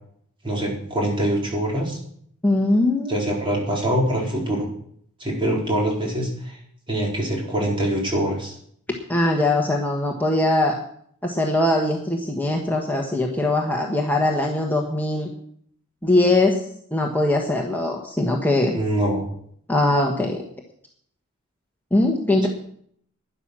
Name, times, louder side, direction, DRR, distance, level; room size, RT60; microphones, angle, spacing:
voice 1, 0.4-2.0 3.1-4.7 5.2-6.6 6.9-8.5 18.7-19.3 22.4-22.5, right 1 dB, 25° right, -2 dB, 4.1 m, -24 dB
voice 2, 2.4-3.3 9.1-10.7 11.2-15.3 16.0-16.6 16.9-18.8 19.7-20.4 21.9-22.5, left 1 dB, 10° left, 0 dB, 1.3 m, -21 dB
12.0 x 10.5 x 6.2 m, 0.65 s
head